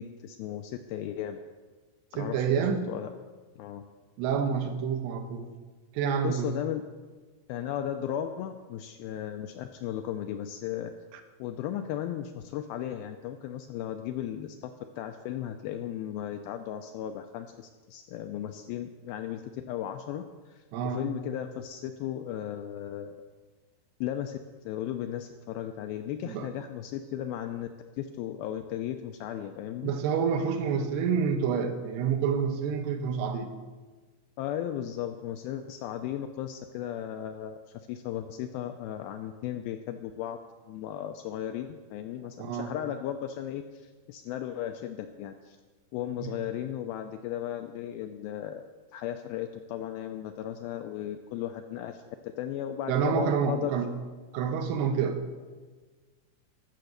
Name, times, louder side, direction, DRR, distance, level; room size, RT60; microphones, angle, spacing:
voice 1, 0.0-1.4 2.1-3.1 3.6-3.8 6.2-6.8 7.5-10.9 11.4-14.7 15.0-23.1 24.0-24.4 24.7-27.7 28.0-29.9 34.4-40.4 40.7-45.6 45.9-48.6 48.9-53.8, left 10 dB, 85° left, 7 dB, 2.1 m, -36 dB
voice 2, 2.2-2.9 4.2-5.5 5.9-6.5 20.7-21.1 26.2-26.5 29.8-33.5 42.4-42.7 46.2-46.3 52.9-53.9 54.3-55.2, right 6 dB, 80° right, 7 dB, 3.0 m, -28 dB
13.5 x 6.8 x 6.5 m, 1.4 s
omnidirectional pair, 4.7 m